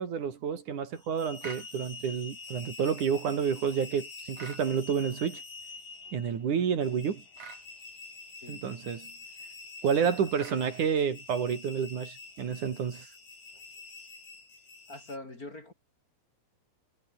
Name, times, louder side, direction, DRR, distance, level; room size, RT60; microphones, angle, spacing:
voice 1, 0.0-5.4 6.1-7.2 8.5-9.1 9.8-13.1, right 7 dB, 65° right, 4.0 m, -29 dB
sound 1, 0.9-15.2, left 4 dB, 75° left, 9.1 m, -47 dB
sound 2, 1.4-1.7 4.3-4.7 7.4-7.6 10.3-10.6, right 5 dB, 50° right, 4.9 m, -44 dB
voice 2, 14.9-15.7, left 2 dB, 25° left, 3.8 m, -43 dB
omnidirectional pair, 3.9 m